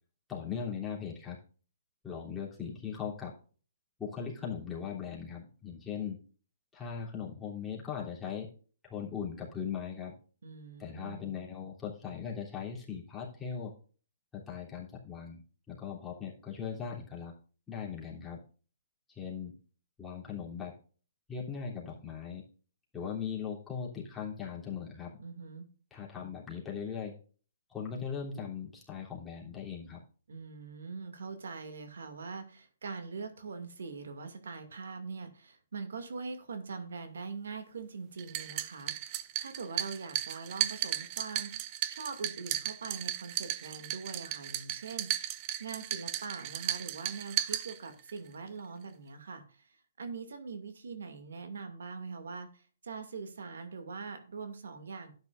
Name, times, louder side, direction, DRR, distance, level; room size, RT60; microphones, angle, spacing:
voice 1, 0.3-1.4 2.0-3.3 4.0-6.2 6.7-8.5 8.8-10.1 10.8-13.7 14.3-15.4 15.7-17.3 17.7-18.4 19.1-19.5 20.0-20.7 21.3-22.4 22.9-25.1 25.9-27.2 27.7-30.0, left 7 dB, 10° left, -5 dB, 3.2 m, -39 dB
voice 2, 10.4-11.3 25.2-25.7 30.3-49.7 50.0-55.1, right 4 dB, 85° right, 7 dB, 2.4 m, -43 dB
sound 1, 38.2-48.2, right 14 dB, 30° right, 0.6 m, -35 dB
12.0 x 9.4 x 2.6 m, 0.39 s
hypercardioid pair, 160°, 0 cm